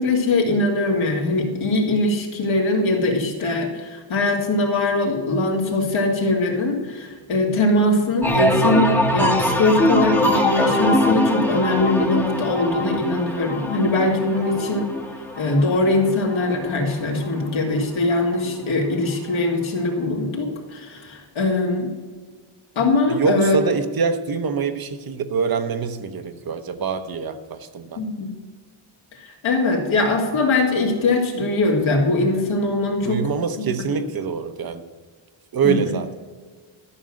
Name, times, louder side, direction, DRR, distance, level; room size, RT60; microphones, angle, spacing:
voice 1, 0.0-14.9 15.4-21.9 22.8-23.6 28.0-28.3 29.2-33.2 33.6-33.7 35.6-35.9, left 2 dB, 75° left, 1 dB, 2.6 m, -21 dB
sound 1, 8.2-17.8 18.2-18.7, left 1 dB, 5° left, 1.0 m, -23 dB
voice 2, 23.1-28.0 33.0-34.8 35.5-36.1, right 6 dB, 45° right, 9 dB, 0.9 m, -25 dB
13.0 x 6.3 x 7.6 m, 1.5 s
cardioid pair, 130°, 48 cm